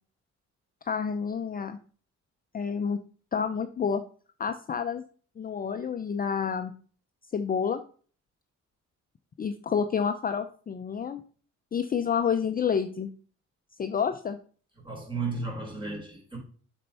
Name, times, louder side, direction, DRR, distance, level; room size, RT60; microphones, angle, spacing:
voice 1, 0.8-1.8 2.5-3.0 3.3-4.0 4.4-5.0 5.4-6.7 7.3-7.8 9.4-11.2 11.7-13.1 13.8-14.4, left 6 dB, 30° left, 0.5 m, -29 dB
voice 2, 14.8-16.4, right 3 dB, 15° right, 4.3 m, -34 dB
7.5 x 4.4 x 5.5 m
cardioid pair, 90°, 30 cm